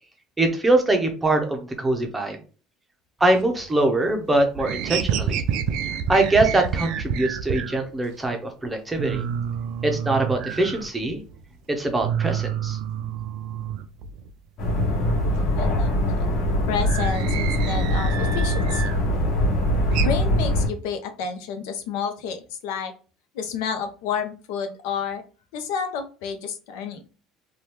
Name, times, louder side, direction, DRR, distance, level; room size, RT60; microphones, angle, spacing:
voice 1, 0.4-2.4 3.2-5.4 6.1-9.2 9.8-11.2 11.7-12.8, right 2 dB, 10° right, 4 dB, 0.6 m, -23 dB
sound 1, 3.3-4.1 4.3-7.8 8.2-8.3 8.6-8.7 8.9-11.4 11.7-14.3 14.6-19.1 19.4-20.1, right 8 dB, 60° right, 0.4 m, -29 dB
sound 2, 14.6-20.7, left 1 dB, 50° left, 1.1 m, -22 dB
voice 2, 15.5-16.2 16.7-18.9 20.0-22.9 23.3-25.2 25.5-27.0, left 6 dB, 85° left, 6 dB, 0.6 m, -30 dB
2.8 x 2.3 x 3.3 m, 0.37 s
cardioid pair, 155°, 0 cm